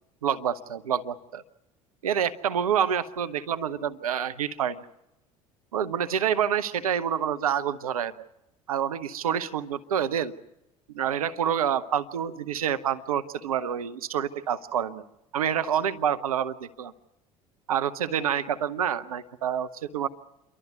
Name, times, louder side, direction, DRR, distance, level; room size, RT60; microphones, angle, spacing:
voice 1, 0.2-1.4 2.0-4.8 5.7-8.1 8.7-10.3 10.9-15.0 15.3-16.9 17.7-20.1, right 9 dB, 85° right, 12 dB, 0.8 m, -27 dB
29.0 x 12.5 x 9.4 m, 0.87 s
hypercardioid pair, 65°, 18 cm